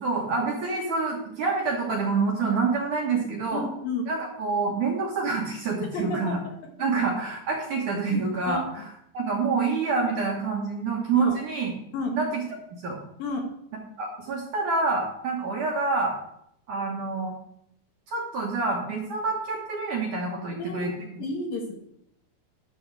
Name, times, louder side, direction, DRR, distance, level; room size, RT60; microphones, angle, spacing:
voice 1, 0.0-3.7 4.1-6.4 6.8-8.9 9.1-11.7 12.1-12.4 12.8-13.0 14.0-16.1 16.7-17.3 18.1-21.3, right 4 dB, 65° right, -1 dB, 2.2 m, -27 dB
voice 2, 3.5-4.0 5.8-6.5 8.5-8.6 11.1-11.4 11.9-12.1 13.2-13.4 20.6-20.9 21.2-21.7, left 3 dB, 65° left, 2 dB, 2.7 m, -30 dB
11.0 x 7.0 x 4.7 m, 0.74 s
omnidirectional pair, 4.9 m